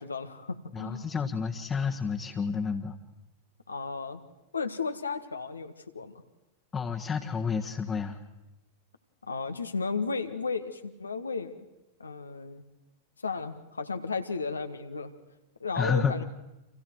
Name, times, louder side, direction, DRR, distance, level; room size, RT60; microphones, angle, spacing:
voice 1, 0.0-1.1 3.7-4.2 4.5-6.2 9.2-11.6 12.0-12.6 13.2-15.1 15.6-16.2, left 4 dB, 80° left, 8 dB, 1.7 m, -34 dB
voice 2, 0.7-3.0 6.7-8.2 15.8-16.1, left 6 dB, 20° left, -1 dB, 1.7 m, -30 dB
30.0 x 27.0 x 4.7 m, 0.99 s
figure-of-eight pair, 95°, 0 cm